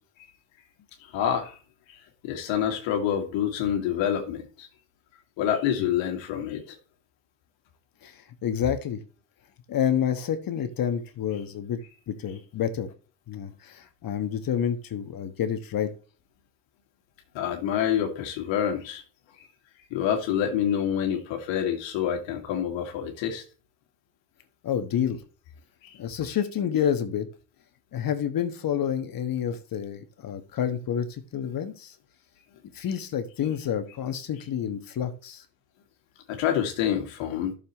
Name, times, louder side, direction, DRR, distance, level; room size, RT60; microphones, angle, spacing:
voice 1, 1.0-1.6 1.9-4.7 5.4-6.8 17.3-19.0 19.4-19.5 19.9-23.4 25.8-26.0 36.3-37.5, left 9 dB, 65° left, 2.1 m, -27 dB
voice 2, 8.0-9.0 9.7-11.8 12.1-12.9 13.3-15.9 24.6-25.2 26.0-27.3 27.9-31.9 32.7-35.4, left 9 dB, 45° left, 1.4 m, -29 dB
12.5 x 6.9 x 3.0 m
hypercardioid pair, 75°, 48 cm